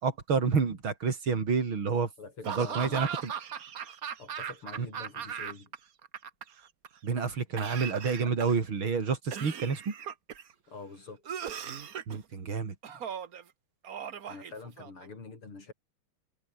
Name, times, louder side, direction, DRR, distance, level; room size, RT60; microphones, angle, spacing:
voice 1, 0.0-2.1 2.5-3.1 4.8-4.9 7.0-9.9 12.1-12.7, right 5 dB, 65° right, 4.0 m, -29 dB
voice 2, 2.2-3.1 4.2-5.7 10.7-11.2 12.9-13.0 14.3-15.7, left 4 dB, 75° left, 5.6 m, -45 dB
Laughter / Cough, 2.4-5.8 6.0-6.9 7.6-8.7 9.3-10.5 11.2-12.2 12.8-13.4 13.8-15.1, right 8 dB, 45° right, 1.5 m, -38 dB
omnidirectional pair, 2.4 m